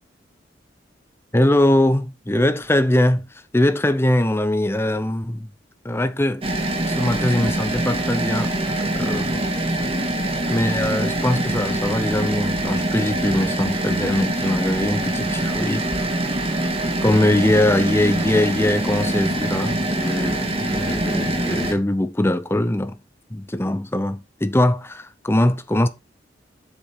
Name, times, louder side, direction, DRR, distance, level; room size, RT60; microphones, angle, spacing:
voice 1, 1.3-3.3 3.5-5.5 5.8-6.5 6.9-9.5 10.5-15.9 17.0-23.0 23.3-25.9, left 1 dB, 15° left, 0.7 m, -21 dB
sound 1, 6.4-21.7, right 1 dB, 30° right, 1.8 m, -24 dB
7.3 x 7.2 x 3.6 m
head